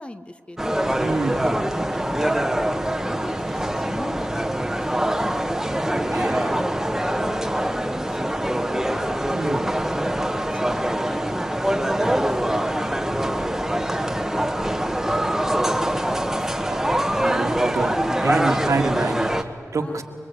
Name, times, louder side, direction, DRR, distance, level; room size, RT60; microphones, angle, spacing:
voice 1, 0.0-1.5 1.8-2.5 2.8-10.2 10.5-17.5 18.1-18.2 18.5-19.0 19.8-20.0, left 1 dB, 20° left, 10 dB, 1.0 m, -38 dB
sound 1, 0.6-19.4, right 1 dB, 10° right, 1.2 m, -24 dB
voice 2, 1.0-1.4 6.1-6.5 9.3-9.7 16.7-20.0, right 3 dB, 75° right, 4 dB, 1.8 m, -27 dB
26.0 x 22.5 x 8.4 m, 2.4 s
wide cardioid pair, 85°, 5 cm